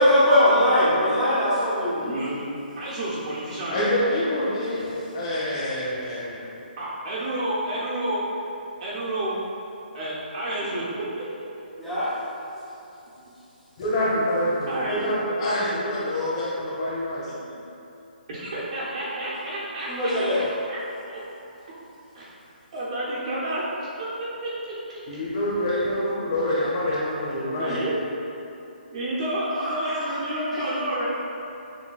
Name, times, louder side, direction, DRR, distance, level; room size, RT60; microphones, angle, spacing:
voice 1, 0.0-2.0 11.8-12.1 19.9-20.4 29.5-30.1 30.5-30.6, left 1 dB, ahead, -13 dB, 0.7 m, -21 dB
voice 2, 2.0-2.4 2.8-3.9 6.8-8.2 8.8-9.4 9.9-11.5 14.7-15.1 17.3-17.6 18.3-21.2 22.1-22.3 22.7-23.9 24.2-25.0 27.6-28.0 28.9-31.1, right 1 dB, 45° right, -8 dB, 0.7 m, -30 dB
voice 3, 3.7-6.4 13.8-17.3 25.1-27.9, left 1 dB, 35° left, -8 dB, 1.1 m, -26 dB
6.4 x 2.2 x 2.3 m, 2.8 s
hypercardioid pair, 160°, 5 cm